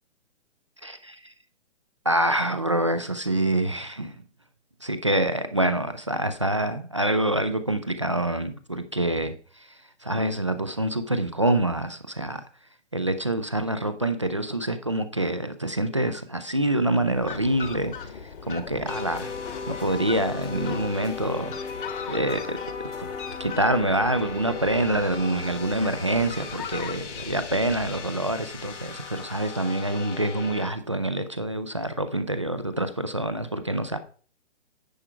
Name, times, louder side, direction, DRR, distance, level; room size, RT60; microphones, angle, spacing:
voice 1, 0.8-1.3 2.1-4.2 4.8-9.7 10.0-12.4 12.9-17.9 18.5-19.4 19.7-21.6 22.1-22.6 23.4-34.0, right 1 dB, 25° right, 10 dB, 0.4 m, -26 dB
Fowl, 16.6-29.6, left 6 dB, 45° left, 1.1 m, -40 dB
sound 1, 18.9-30.7, left 5 dB, 75° left, 1.8 m, -37 dB
10.0 x 5.6 x 4.4 m, 0.41 s
hypercardioid pair, 170°, 37 cm